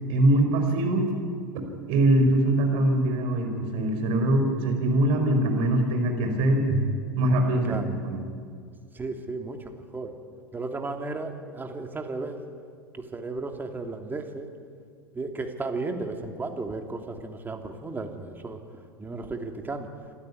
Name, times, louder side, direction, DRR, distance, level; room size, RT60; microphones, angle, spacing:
voice 1, 0.1-1.0 1.9-8.2, right 1 dB, 55° right, 4 dB, 5.6 m, -23 dB
voice 2, 8.9-10.1 10.5-12.4 12.9-14.5 15.1-18.6 19.0-19.9, right 3 dB, 15° right, 4 dB, 2.8 m, -34 dB
28.0 x 13.0 x 9.9 m, 2.1 s
hypercardioid pair, 90°, 11 cm